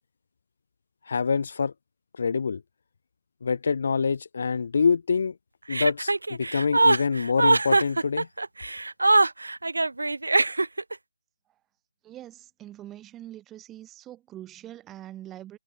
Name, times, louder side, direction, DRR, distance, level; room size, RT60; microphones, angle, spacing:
voice 1, 1.1-1.7 2.2-2.6 3.4-5.4 5.7-8.3, left 5 dB, 45° left, 0.8 m, -25 dB
Chuckle chortle, 5.7-10.9, right 2 dB, 80° right, 0.4 m, -22 dB
voice 2, 12.0-15.6, right 13 dB, 10° right, 1.4 m, -43 dB
figure-of-eight pair, 165°, 0 cm